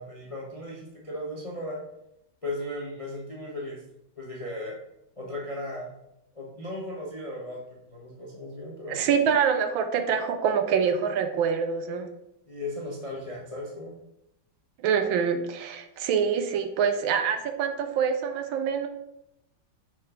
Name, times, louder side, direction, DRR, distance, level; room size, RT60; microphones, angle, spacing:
voice 1, 0.0-1.8 2.4-3.8 4.2-4.8 5.2-5.9 6.3-9.0 12.5-13.9, left 1 dB, 40° left, -3 dB, 0.5 m, -36 dB
voice 2, 8.9-12.1 14.8-18.9, right 7 dB, 75° right, 8 dB, 1.3 m, -25 dB
6.2 x 4.7 x 3.8 m, 0.82 s
omnidirectional pair, 2.3 m